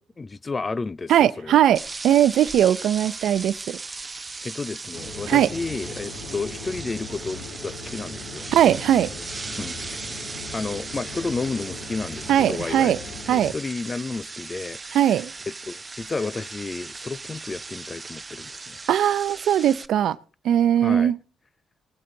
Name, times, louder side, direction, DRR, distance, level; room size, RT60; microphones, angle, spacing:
voice 1, 0.2-1.6 4.4-8.5 9.6-13.0 13.3-15.2 15.7-18.8 20.8-21.1, left 3 dB, 30° left, 0.5 m, -32 dB
voice 2, 1.1-3.8 5.3-5.5 8.5-9.1 12.3-13.0 13.3-13.5 14.9-15.3 18.9-20.2 20.4-21.2, right 10 dB, 75° right, 0.6 m, -19 dB
sound 1, 1.7-19.9, right 3 dB, 25° right, 0.6 m, -37 dB
sound 2, 4.9-13.5, left 3 dB, 90° left, 3.8 m, -39 dB
19.5 x 7.8 x 3.8 m
cardioid pair, 90°, 0 cm